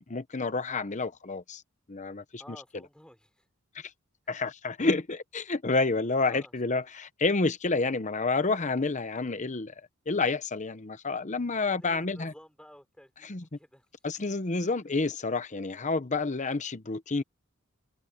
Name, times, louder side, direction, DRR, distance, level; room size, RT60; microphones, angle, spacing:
voice 1, 0.0-1.6 1.9-2.9 3.7-3.9 4.3-9.7 10.1-12.3 13.2-13.6 14.0-17.2, left 3 dB, 35° left, 0.8 m, -29 dB
voice 2, 2.4-3.5 6.2-6.5 11.6-13.9 14.6-14.7, equal, 5° left, 5.3 m, -53 dB
head